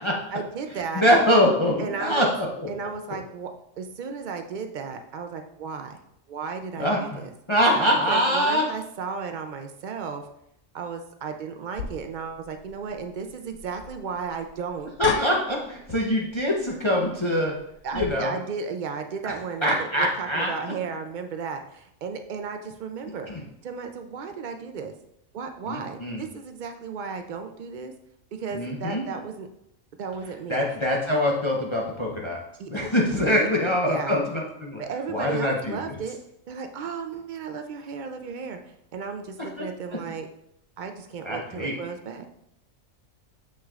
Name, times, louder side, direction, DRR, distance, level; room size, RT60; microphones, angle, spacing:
voice 1, 0.3-1.1 1.8-2.3 2.7-3.5 3.8-6.0 6.3-7.3 8.1-10.3 10.7-14.9 17.8-23.3 23.6-24.9 25.3-27.9 28.3-29.5 30.0-30.6 32.6-32.7 33.3-33.5 33.9-34.2 34.8-36.2 36.5-38.6 38.9-40.3 40.8-42.3, right 5 dB, 75° right, 6 dB, 0.4 m, -34 dB
voice 2, 0.9-2.7 6.8-7.0 7.5-8.6 15.0-17.5 17.9-18.3 19.2-20.5 23.3-23.4 25.7-26.2 28.5-29.0 30.5-32.4 32.7-34.8 35.1-35.8 39.6-39.7 41.2-41.7, equal, 30° left, -2 dB, 0.6 m, -23 dB
sound 1, 11.8-18.1, left 6 dB, 90° left, 1.1 m, -38 dB
6.8 x 6.1 x 2.4 m, 0.78 s
omnidirectional pair, 1.4 m